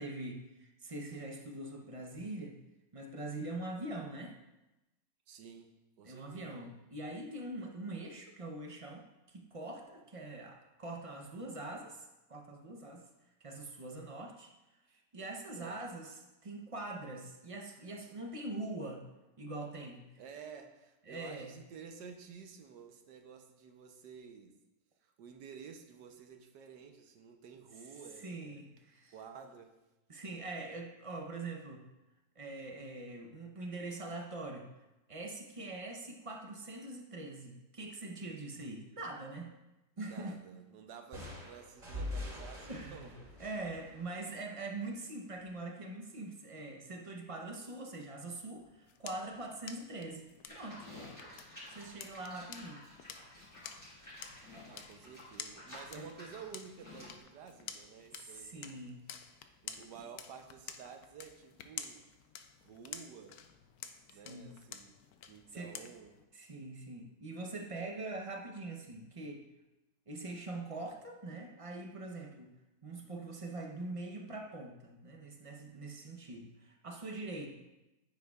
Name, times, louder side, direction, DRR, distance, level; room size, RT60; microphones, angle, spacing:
voice 1, 0.0-2.6 2.9-4.4 6.0-13.1 13.4-14.5 14.9-19.0 19.4-20.1 21.1-21.5 28.2-29.1 30.1-31.8 32.4-34.7 35.1-39.5 40.0-40.4 42.7-43.1 43.4-50.9 51.7-52.8 54.4-54.7 55.9-56.1 58.1-59.3 64.1-64.5 65.5-65.7 66.3-69.4 70.1-72.5 72.8-77.5, right 2 dB, 50° right, 2 dB, 0.4 m, -43 dB
voice 2, 5.3-5.7 6.0-6.6 15.5-15.8 20.2-24.6 25.0-28.7 29.1-29.8 40.0-43.3 54.6-58.7 59.6-62.0 62.6-63.4 64.1-65.0 65.3-66.2, right 6 dB, 80° right, 6 dB, 1.4 m, -51 dB
sound 1, 41.1-44.8, left 1 dB, 30° right, 2.6 m, -44 dB
sound 2, 48.5-66.2, left 8 dB, 70° left, 1.0 m, -51 dB
Livestock farm animals working animals, 50.5-57.2, left 1 dB, 20° left, 3.3 m, -52 dB
9.2 x 9.1 x 2.4 m, 0.98 s
omnidirectional pair, 1.9 m